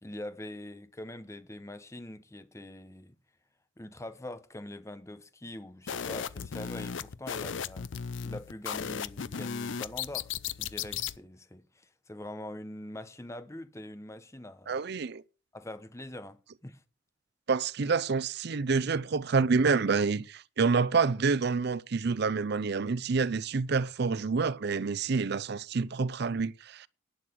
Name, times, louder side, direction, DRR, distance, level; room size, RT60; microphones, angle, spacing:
voice 1, 0.0-3.2 3.8-7.9 8.2-10.3 10.6-14.8 15.5-16.8, left 1 dB, 15° left, 0.9 m, -43 dB
sound 1, 5.9-11.2, left 7 dB, 70° left, 0.5 m, -36 dB
voice 2, 14.7-15.2 17.5-26.9, right 4 dB, 60° right, 0.6 m, -28 dB
11.5 x 7.6 x 6.2 m
head